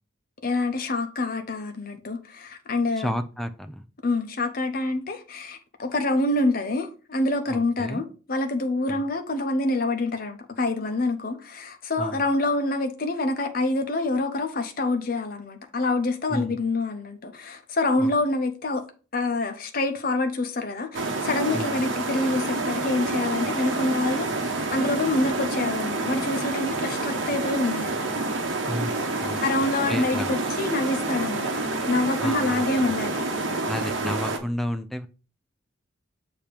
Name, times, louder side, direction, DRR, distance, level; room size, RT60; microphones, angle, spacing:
voice 1, 0.4-3.1 4.0-18.8 19.1-27.9 29.4-33.2, left 2 dB, 45° left, 0.8 m, -26 dB
voice 2, 3.0-3.9 7.5-8.0 8.9-9.0 12.0-12.2 16.3-16.6 18.0-18.1 21.5-21.8 28.6-28.9 29.2-30.4 32.2-33.0 33.7-35.1, equal, ahead, 0.4 m, -32 dB
sound 1, 20.9-34.4, right 2 dB, 70° right, 1.2 m, -28 dB
6.8 x 2.9 x 5.1 m
head